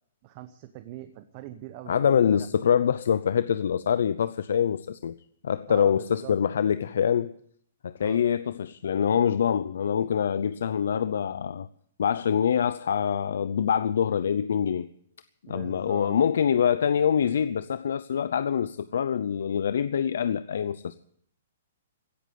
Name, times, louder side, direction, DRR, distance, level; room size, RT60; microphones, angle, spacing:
voice 1, 0.2-2.5 5.7-6.3 8.0-8.2 15.5-16.2, right 14 dB, 35° right, 0.9 m, -43 dB
voice 2, 1.9-5.1 5.4-7.3 7.8-11.7 12.0-14.9 15.5-21.1, left 8 dB, 75° left, 0.6 m, -25 dB
16.5 x 8.4 x 9.5 m
hypercardioid pair, 160°, 0 cm